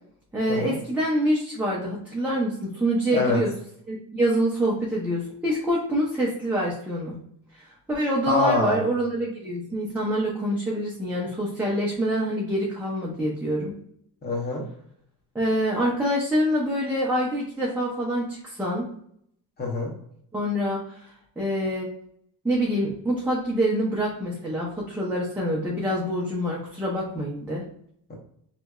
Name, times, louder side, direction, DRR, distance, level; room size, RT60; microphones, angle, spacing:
voice 1, 0.3-3.5 3.9-7.2 7.5-13.7 15.3-18.9 20.3-21.1 21.4-21.9 22.4-27.6, equal, 5° right, -6 dB, 0.7 m, -26 dB
voice 2, 8.3-8.8 14.2-14.6 19.6-19.9, left 2 dB, 25° left, -1 dB, 1.1 m, -24 dB
3.3 x 3.0 x 2.3 m, 0.67 s
cardioid pair, 125°, 37 cm